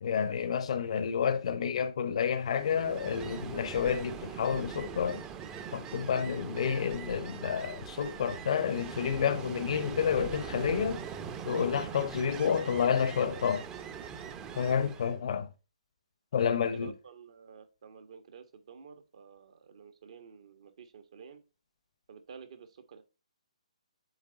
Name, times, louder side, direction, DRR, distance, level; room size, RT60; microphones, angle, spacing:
voice 1, 0.0-5.2 5.7-11.0 11.5-13.7 14.6-15.5 16.3-16.9, left 7 dB, 60° left, 0.8 m, -30 dB
Ocean, 2.4-15.2, right 7 dB, 15° right, 0.6 m, -42 dB
voice 2, 14.7-15.2 16.4-21.4 22.1-23.0, right 6 dB, 60° right, 1.4 m, -51 dB
8.0 x 3.4 x 3.9 m
hypercardioid pair, 145°, 4 cm